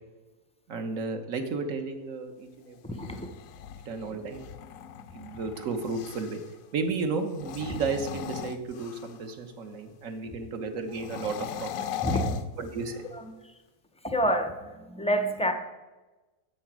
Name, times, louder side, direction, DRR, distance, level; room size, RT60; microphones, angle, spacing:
voice 1, 0.7-3.2 3.8-4.4 5.1-6.4 6.7-11.7 12.1-12.2 12.6-13.0, right 4 dB, 60° right, 7 dB, 1.5 m, -33 dB
sound 1, 2.8-6.5 7.3-9.3 10.9-13.2, left 9 dB, 70° left, 0.9 m, -39 dB
voice 2, 2.8-3.3 12.0-12.4 13.1-13.3 14.0-15.5, equal, 10° left, 7 dB, 0.4 m, -28 dB
9.2 x 7.9 x 6.0 m, 1.2 s
omnidirectional pair, 1.6 m